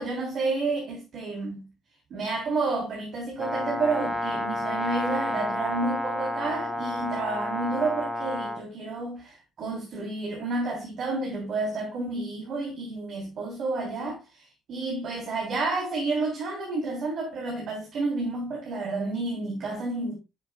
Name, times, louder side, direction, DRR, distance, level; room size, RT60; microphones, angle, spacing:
voice 1, 0.0-1.7 2.1-14.2 14.7-20.1, right 3 dB, 60° right, 3.4 m, -30 dB
Brass instrument, 3.4-8.6, left 1 dB, 10° left, 2.9 m, -30 dB
11.5 x 6.9 x 2.4 m
hypercardioid pair, 45°, 0 cm